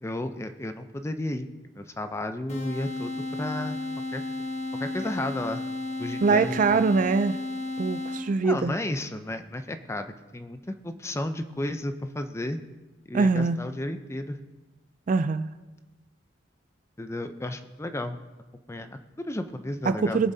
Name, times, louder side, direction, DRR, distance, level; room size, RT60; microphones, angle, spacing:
voice 1, 0.0-1.5 1.8-3.8 4.1-4.2 4.8-5.6 6.0-6.8 8.4-12.6 13.1-14.4 17.0-18.2 18.7-20.2, left 1 dB, 15° left, 8 dB, 0.5 m, -33 dB
sound 1, 2.5-8.5, left 2 dB, 35° left, 1.3 m, -33 dB
voice 2, 6.2-7.4 7.8-8.7 13.1-13.6 15.1-15.5 19.9-20.3, right 4 dB, 45° right, 12 dB, 0.3 m, -23 dB
21.0 x 7.4 x 2.7 m, 1.2 s
head